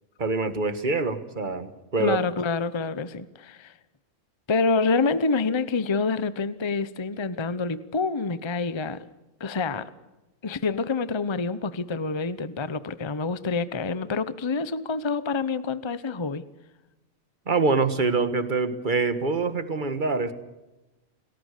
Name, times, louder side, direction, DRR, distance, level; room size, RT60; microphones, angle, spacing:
voice 1, 0.2-2.3 17.5-20.3, right 4 dB, 35° right, 1.7 m, -25 dB
voice 2, 2.0-3.7 4.5-9.0 9.4-9.9 10.4-16.5, left 4 dB, 25° left, 0.8 m, -27 dB
29.5 x 19.0 x 6.7 m
omnidirectional pair, 1.5 m